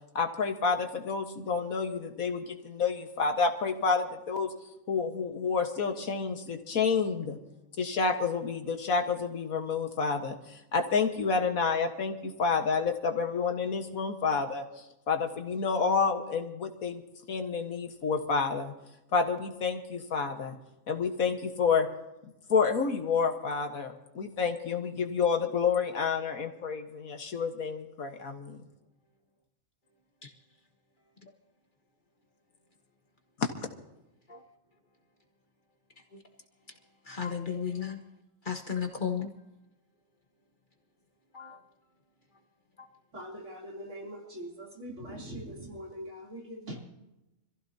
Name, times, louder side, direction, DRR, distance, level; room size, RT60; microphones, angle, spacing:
voice 1, 0.2-4.5 4.9-7.4 7.8-17.0 17.3-18.7 19.1-20.6 20.9-21.9 22.5-28.6 33.4-33.5, left 5 dB, 85° left, 5 dB, 1.9 m, -29 dB
voice 2, 37.1-38.0 38.4-39.3 41.3-41.6, left 7 dB, 35° left, 4 dB, 1.5 m, -33 dB
voice 3, 43.1-46.8, equal, 60° right, -1 dB, 3.6 m, -42 dB
26.0 x 15.5 x 2.8 m, 0.94 s
omnidirectional pair, 1.4 m